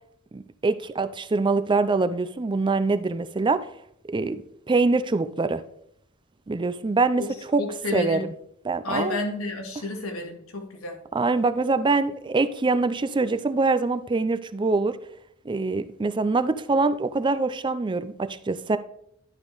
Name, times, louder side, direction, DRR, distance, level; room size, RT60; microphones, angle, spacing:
voice 1, 0.3-3.7 4.1-5.6 6.5-7.2 7.5-7.6 7.9-8.3 8.6-9.2 11.1-15.0 15.5-18.8, right 3 dB, 25° right, 0.4 m, -24 dB
voice 2, 7.6-8.3 8.8-11.0, left 2 dB, 85° left, 1.9 m, -31 dB
11.5 x 5.0 x 3.9 m
head